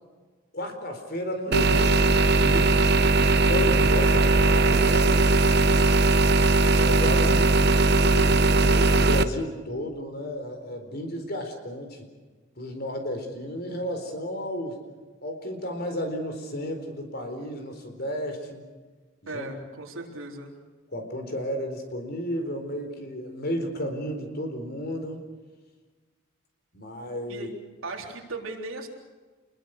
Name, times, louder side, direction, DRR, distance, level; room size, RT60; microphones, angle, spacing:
voice 1, 0.5-2.9 3.4-5.4 6.6-7.6 8.0-12.1 12.6-14.7 15.2-18.6 19.2-19.5 20.9-25.2 26.7-27.5, equal, 50° left, 5 dB, 4.3 m, -33 dB
sound 1, 1.5-9.2, right 3 dB, 50° right, 0.9 m, -19 dB
voice 2, 19.3-20.5 27.3-27.5 27.8-28.9, right 2 dB, 75° right, 1 dB, 3.7 m, -37 dB
28.5 x 21.5 x 6.6 m, 1.4 s
head